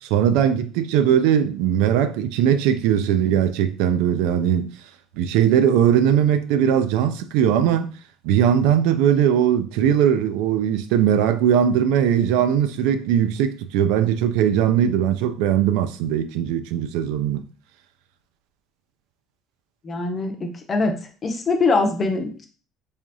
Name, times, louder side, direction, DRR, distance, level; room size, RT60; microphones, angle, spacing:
voice 1, 0.0-4.7 5.2-7.9 8.2-17.4, right 9 dB, 80° right, 0.3 m, -19 dB
voice 2, 19.8-20.9 21.2-22.5, left 3 dB, 20° left, 0.5 m, -23 dB
3.5 x 3.3 x 2.6 m
cardioid pair, 180°, 0 cm